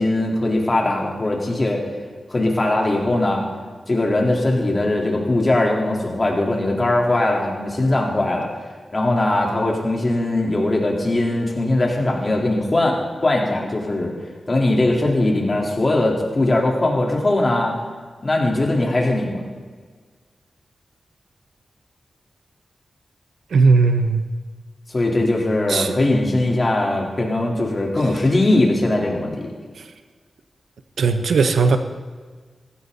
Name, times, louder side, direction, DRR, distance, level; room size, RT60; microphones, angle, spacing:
voice 1, 0.0-1.8 2.3-3.4 3.9-8.5 8.9-14.1 14.5-17.7 18.2-19.4 24.9-29.4, left 2 dB, 35° left, -1 dB, 4.0 m, -20 dB
voice 2, 23.5-24.3 25.7-25.9 31.0-31.8, right 4 dB, 85° right, 8 dB, 1.1 m, -17 dB
18.5 x 15.5 x 4.2 m, 1.5 s
cardioid pair, 70°, 0 cm